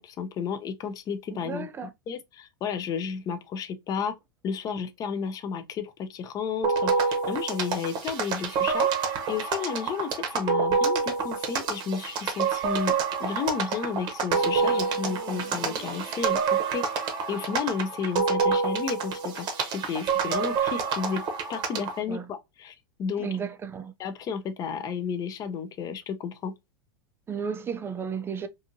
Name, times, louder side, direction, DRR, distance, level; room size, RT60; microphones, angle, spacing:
voice 1, 0.0-1.7 2.1-4.1 4.4-12.9 13.2-21.2 21.5-23.3 24.0-26.5, left 6 dB, 30° left, 0.5 m, -32 dB
voice 2, 1.3-1.9 22.1-22.3 23.2-23.9 27.3-28.5, right 6 dB, 20° right, 0.4 m, -33 dB
sound 1, 6.6-22.0, right 5 dB, 40° right, 0.8 m, -27 dB
2.6 x 2.5 x 2.6 m
hypercardioid pair, 105°, 12 cm